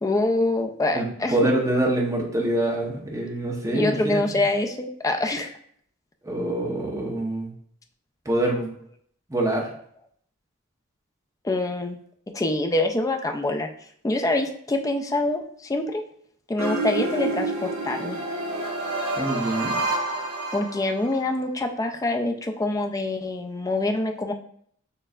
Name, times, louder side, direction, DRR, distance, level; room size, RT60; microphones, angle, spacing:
voice 1, 0.0-1.5 3.7-5.5 11.4-12.0 12.3-13.7 14.0-16.0 16.5-18.2 20.5-24.3, left 2 dB, 15° left, 4 dB, 0.4 m, -25 dB
voice 2, 0.9-4.4 6.2-7.5 8.2-8.7 9.3-9.7 19.2-19.8, right 1 dB, 15° right, -2 dB, 0.9 m, -25 dB
sound 1, 16.6-21.2, right 2 dB, 65° right, 1.2 m, -28 dB
6.6 x 3.2 x 2.4 m, 0.63 s
head